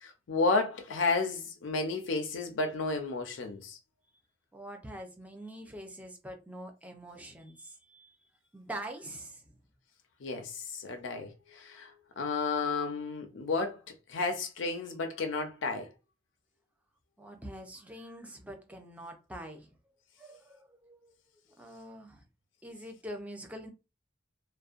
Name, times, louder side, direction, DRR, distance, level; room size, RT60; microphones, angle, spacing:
voice 1, 0.0-3.8 10.2-13.8 14.1-15.9, left 3 dB, 85° left, 0.5 m, -32 dB
voice 2, 4.5-8.1 8.5-9.4 17.2-19.7 20.2-21.1 21.6-22.2 22.6-23.7, right 1 dB, 10° right, 0.5 m, -44 dB
2.5 x 2.1 x 2.4 m
head